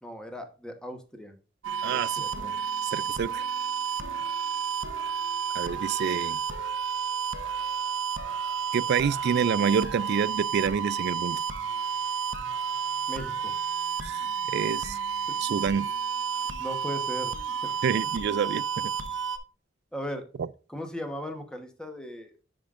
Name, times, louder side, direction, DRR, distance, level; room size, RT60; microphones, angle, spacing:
voice 1, 0.0-1.3 1.8-2.5 13.1-13.6 16.3-17.3 19.9-20.3 20.7-22.3, equal, 5° left, 1.1 m, -38 dB
sound 1, 1.6-19.4, right 6 dB, 90° right, 0.9 m, -31 dB
voice 2, 1.8-2.2 2.8-3.4 5.5-6.4 8.7-11.4 14.0-14.2 14.5-15.0 15.4-15.9 17.8-18.9 20.4-20.5, right 7 dB, 60° right, 0.3 m, -27 dB
10.5 x 5.1 x 2.5 m
head